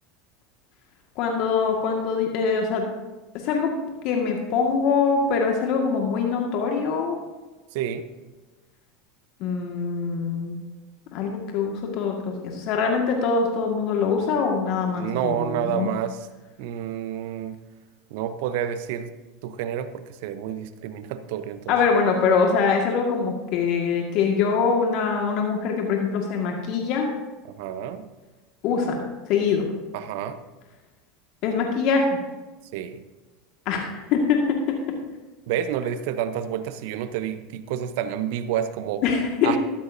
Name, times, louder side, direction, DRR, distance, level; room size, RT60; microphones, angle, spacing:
voice 1, 1.2-2.8 3.4-3.7 4.0-7.2 9.4-10.6 11.1-15.9 21.7-27.1 28.6-29.0 29.3-29.7 31.4-32.1 33.7-34.4 39.0-39.6, left 5 dB, 55° left, 1 dB, 1.8 m, -23 dB
voice 2, 14.9-16.3 16.6-17.5 18.1-19.1 19.4-21.8 27.6-28.0 29.9-30.4 32.7-33.0 35.5-39.0 39.4-39.6, right 9 dB, 65° right, 11 dB, 0.9 m, -29 dB
13.5 x 13.0 x 2.7 m, 1.2 s
hypercardioid pair, 85°, 0 cm